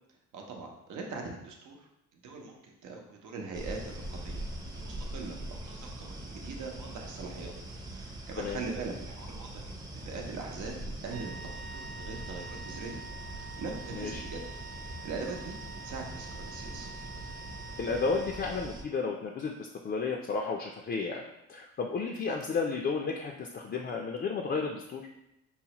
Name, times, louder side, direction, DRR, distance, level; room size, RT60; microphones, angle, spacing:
voice 1, 0.3-7.5 7.8-13.0 13.3-14.4 14.8-15.6 15.8-16.9, right 4 dB, 80° right, 1 dB, 0.8 m, -42 dB
sound 1, 3.5-18.8, right 1 dB, 15° right, 0.6 m, -42 dB
sound 2, 11.1-19.0, right 4 dB, 60° right, 0.4 m, -47 dB
voice 2, 13.9-14.2 17.8-21.2 21.5-25.0, left 4 dB, 35° left, 0 dB, 0.4 m, -32 dB
5.5 x 2.1 x 2.9 m, 0.85 s
cardioid pair, 90°, 30 cm